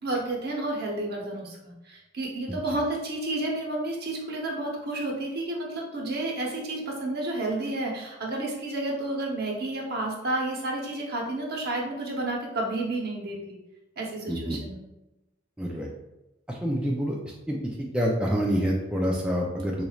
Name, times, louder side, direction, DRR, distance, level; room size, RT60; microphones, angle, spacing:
voice 1, 0.0-13.6 14.0-14.8, right 2 dB, 50° right, -1 dB, 0.9 m, -31 dB
voice 2, 15.6-15.9 16.5-17.2 17.5-19.8, equal, 5° right, -2 dB, 0.3 m, -27 dB
4.0 x 3.1 x 2.3 m, 0.98 s
head